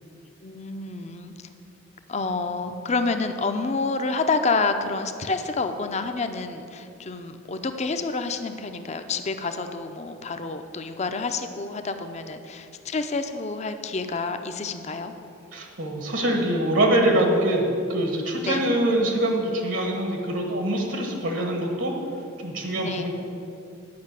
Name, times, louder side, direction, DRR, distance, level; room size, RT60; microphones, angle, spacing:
voice 1, 0.4-1.3 2.1-15.1 18.4-18.7 22.7-23.1, left 3 dB, 35° left, 8 dB, 0.5 m, -28 dB
voice 2, 15.5-21.9 22.4-23.1, right 1 dB, 70° right, 2 dB, 1.4 m, -24 dB
9.6 x 5.6 x 8.1 m, 2.6 s
head